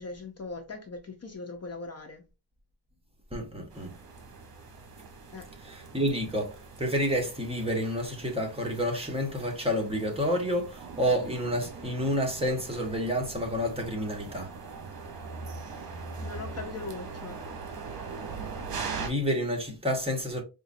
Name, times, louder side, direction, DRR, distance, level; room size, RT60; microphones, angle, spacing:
voice 1, 0.0-2.2 5.3-5.5 16.2-17.4, left 3 dB, 35° left, 0.7 m, -40 dB
voice 2, 3.3-3.9 5.6-14.5 19.0-20.4, equal, 15° right, 1.2 m, -29 dB
sound 1, 3.7-19.1, right 4 dB, 55° right, 1.1 m, -41 dB
4.8 x 2.5 x 2.6 m
cardioid pair, 100°, 42 cm